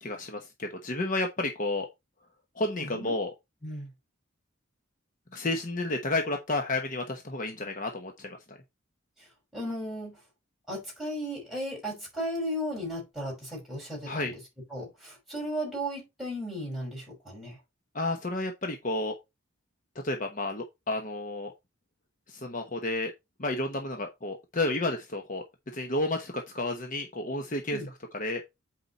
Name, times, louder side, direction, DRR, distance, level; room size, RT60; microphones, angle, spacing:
voice 1, 0.0-1.9 2.6-3.3 5.3-8.6 14.1-14.3 17.9-19.1 20.0-21.5 22.3-23.1 23.4-25.4 25.7-27.8 28.1-28.4, left 2 dB, 40° left, 1.1 m, -31 dB
voice 2, 2.8-3.2 3.6-3.9 9.5-10.2 10.7-14.4 14.7-17.6 27.7-27.9, equal, ahead, 5.4 m, -35 dB
8.2 x 4.9 x 4.2 m
head